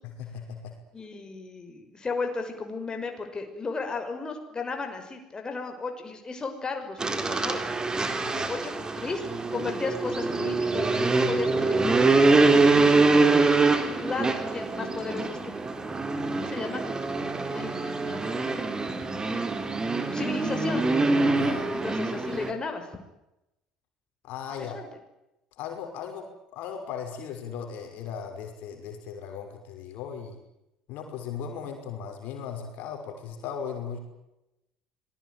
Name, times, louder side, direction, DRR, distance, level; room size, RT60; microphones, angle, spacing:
voice 1, 0.0-0.7 8.2-8.5 21.3-21.7 24.2-24.8 25.6-26.3 26.5-30.4 30.9-34.0, left 7 dB, 60° left, 4 dB, 5.7 m, -37 dB
voice 2, 0.9-7.6 8.2-9.2 9.5-13.5 14.0-15.9 16.4-18.9 20.0-20.9 21.7-22.9 24.6-24.9, left 4 dB, 25° left, 5 dB, 5.9 m, -35 dB
sound 1, 7.0-22.5, right 3 dB, 25° right, 4.1 m, -24 dB
26.0 x 20.5 x 9.4 m, 0.92 s
figure-of-eight pair, 60°, 3 cm